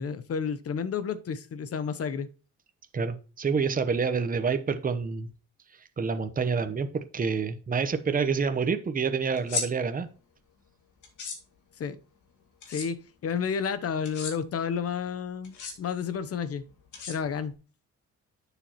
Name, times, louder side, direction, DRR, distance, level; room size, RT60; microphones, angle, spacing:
voice 1, 0.0-2.3 11.8-12.0 12.7-16.6 17.1-17.5, left 6 dB, 50° left, 0.9 m, -31 dB
voice 2, 2.9-5.3 6.0-10.1, right 5 dB, 30° right, 0.9 m, -28 dB
sound 1, 9.4-9.7 11.0-11.4 12.6-12.9 14.0-14.3 15.4-15.7 16.9-17.5, left 5 dB, 80° left, 2.1 m, -34 dB
11.0 x 7.0 x 3.0 m
cardioid pair, 90°, 30 cm